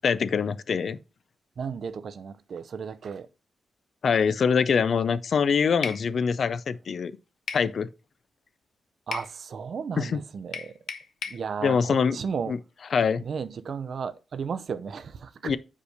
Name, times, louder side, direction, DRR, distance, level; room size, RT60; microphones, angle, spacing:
voice 1, 0.0-1.0 4.0-7.1 7.5-7.9 10.0-10.2 11.6-12.2 12.5-12.6 12.9-13.2 15.4-15.6, left 6 dB, 50° left, 0.4 m, -24 dB
voice 2, 1.6-3.3 9.1-10.7 11.3-12.6 13.2-15.5, right 6 dB, 50° right, 0.6 m, -34 dB
sound 1, 5.8-6.0 7.5-7.7 9.1-9.3 10.5-11.4, left 6 dB, 70° left, 1.0 m, -34 dB
5.3 x 5.0 x 6.4 m
wide cardioid pair, 160°, 0 cm